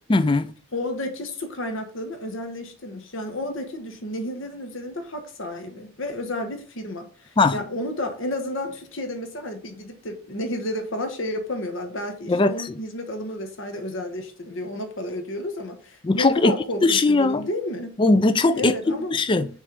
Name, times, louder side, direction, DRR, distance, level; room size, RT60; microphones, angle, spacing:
voice 1, 0.1-0.5 7.4-7.6 12.3-12.8 16.0-16.5 16.8-17.5 18.0-19.5, left 2 dB, 25° left, 0.4 m, -20 dB
voice 2, 0.7-18.0 18.5-19.1, left 1 dB, 60° left, 1.2 m, -31 dB
6.2 x 3.4 x 5.2 m
head